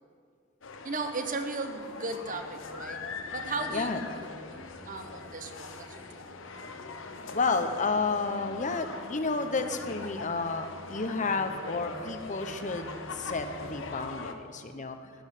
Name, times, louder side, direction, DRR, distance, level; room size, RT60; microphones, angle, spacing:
sound 1, 0.6-14.3, left 4 dB, 70° left, 1.1 m, -42 dB
voice 1, 0.8-3.0 3.3-4.6 4.9-6.5, right 3 dB, 40° right, 6 dB, 1.1 m, -36 dB
sound 2, 2.1-14.0, equal, 90° left, 5.1 m, -49 dB
voice 2, 3.7-4.0 7.3-15.1, left 4 dB, 40° left, 8 dB, 0.9 m, -31 dB
15.5 x 10.5 x 6.6 m, 2.1 s
head